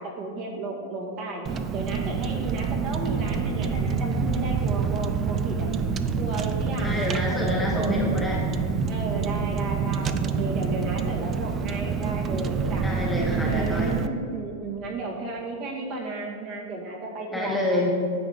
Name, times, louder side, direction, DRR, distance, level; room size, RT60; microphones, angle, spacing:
voice 1, 0.0-5.7 6.2-8.1 8.9-12.9 13.3-17.8, right 3 dB, 40° right, -1 dB, 1.7 m, -34 dB
Car, 1.5-14.1, right 5 dB, 25° right, 0.4 m, -27 dB
sound 1, 2.5-13.9, right 7 dB, 65° right, 1.0 m, -36 dB
voice 2, 6.8-8.5 12.8-13.9 17.3-17.9, left 2 dB, ahead, -3 dB, 1.1 m, -27 dB
9.8 x 7.2 x 3.6 m, 2.3 s
supercardioid pair, 140°, 0 cm